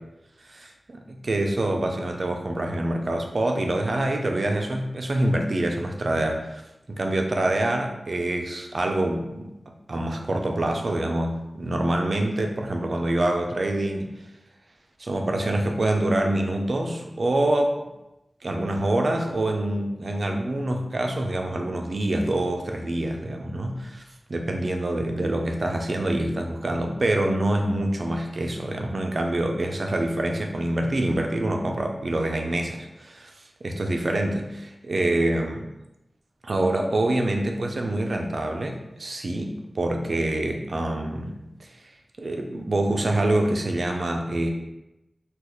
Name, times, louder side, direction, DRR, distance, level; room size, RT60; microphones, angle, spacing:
voice 1, 0.6-6.6 6.9-9.5 9.9-14.1 15.0-17.8 18.4-24.0 24.3-33.3 33.6-35.7 36.4-41.7 42.2-44.5, right 1 dB, 55° right, 3 dB, 0.4 m, -26 dB
3.1 x 2.3 x 3.9 m, 0.93 s
wide cardioid pair, 85°, 0 cm